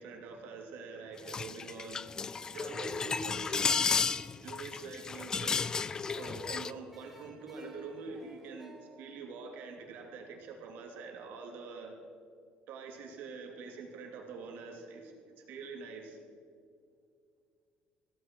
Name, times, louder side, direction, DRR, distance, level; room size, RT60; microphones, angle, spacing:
voice 1, 0.0-2.0 2.5-4.1 4.4-5.6 6.2-11.9 12.7-16.2, right 4 dB, 70° right, 2 dB, 2.8 m, -45 dB
sound 1, 1.2-6.7, left 5 dB, 20° left, 0.3 m, -33 dB
sound 2, 5.3-10.4, equal, 5° right, 1.7 m, -54 dB
15.5 x 14.5 x 4.6 m, 2.4 s
cardioid pair, 175°, 3 cm